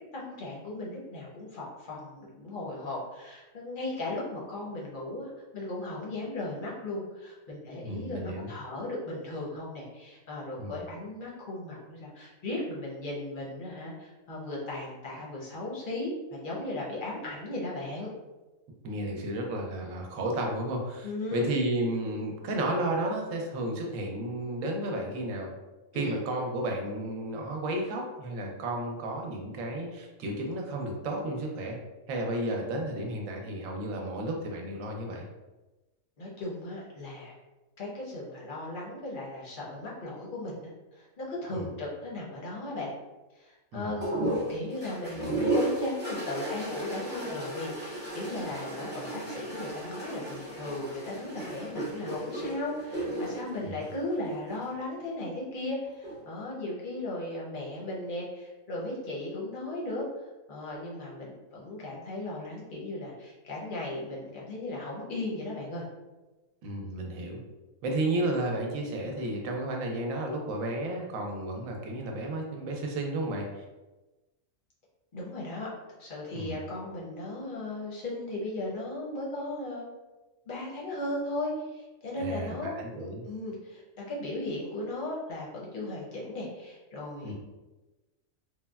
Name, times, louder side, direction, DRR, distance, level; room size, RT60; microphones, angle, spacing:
voice 1, 0.1-18.1 21.0-21.5 25.9-26.2 36.2-37.4 37.8-42.9 43.4-60.0 60.5-65.8 75.1-75.7 76.0-79.9 80.5-83.0 83.3-87.3, left 2 dB, 50° left, -5 dB, 0.7 m, -36 dB
voice 2, 7.8-8.5 10.6-10.8 18.8-25.5 25.9-31.8 32.1-35.2 41.5-41.7 43.7-43.9 53.6-53.8 66.6-67.4 67.8-73.6 76.3-76.6 82.2-83.2 87.2-87.3, right 1 dB, 70° right, 1 dB, 0.9 m, -32 dB
sound 1, 44.0-54.7 55.8-56.4, right 1 dB, 10° right, 0.5 m, -34 dB
3.2 x 2.1 x 2.2 m, 1.1 s
omnidirectional pair, 1.5 m